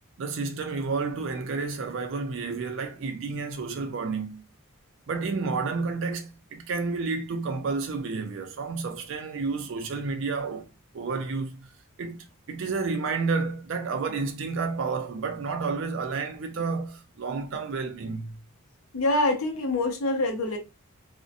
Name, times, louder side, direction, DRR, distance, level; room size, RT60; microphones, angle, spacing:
voice 1, 0.2-4.4 5.1-10.7 10.9-11.7 12.0-12.2 12.5-18.4, right 4 dB, 60° right, 0.4 m, -30 dB
voice 2, 18.9-20.6, left 2 dB, 85° left, 0.6 m, -25 dB
2.6 x 2.1 x 2.4 m
head